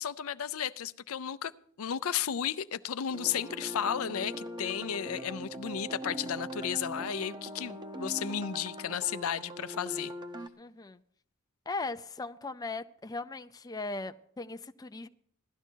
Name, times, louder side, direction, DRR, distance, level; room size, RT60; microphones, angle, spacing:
voice 1, 0.0-1.5 1.8-10.1, left 8 dB, 70° left, 0.5 m, -33 dB
sound 1, 3.1-10.5, right 1 dB, 20° right, 0.8 m, -41 dB
voice 2, 10.6-11.0 11.7-15.1, left 3 dB, 15° left, 0.5 m, -38 dB
17.0 x 12.5 x 4.5 m
head